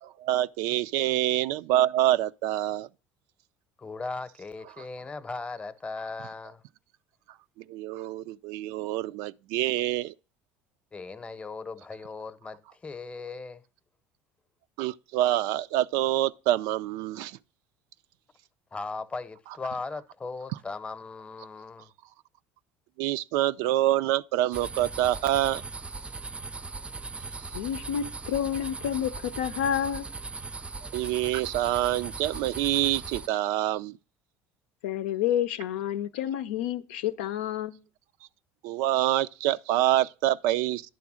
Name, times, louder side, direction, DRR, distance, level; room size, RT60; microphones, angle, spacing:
voice 1, 0.0-2.9 7.7-10.1 14.8-17.4 23.0-25.6 30.9-33.9 38.6-40.8, right 14 dB, 75° right, 0.4 m, -26 dB
voice 2, 3.8-6.6 10.9-13.6 18.7-21.9, left 3 dB, 20° left, 0.8 m, -38 dB
sound 1, 24.5-33.3, right 3 dB, 20° right, 0.5 m, -39 dB
voice 3, 27.5-30.0 34.8-37.8, left 10 dB, 90° left, 0.6 m, -29 dB
10.5 x 3.5 x 6.1 m
supercardioid pair, 85°, 6 cm